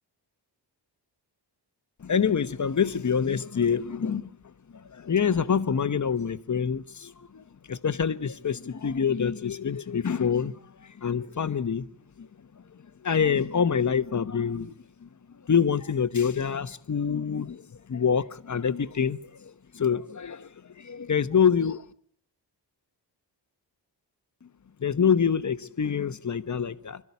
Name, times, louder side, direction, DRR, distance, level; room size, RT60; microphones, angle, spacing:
voice 1, 2.0-4.3 4.7-11.9 12.2-12.3 12.7-14.7 15.0-15.1 15.5-20.5 20.8-21.9 24.8-27.0, left 7 dB, 40° left, 1.1 m, -26 dB
25.0 x 13.0 x 9.6 m
cardioid pair, 70°, 43 cm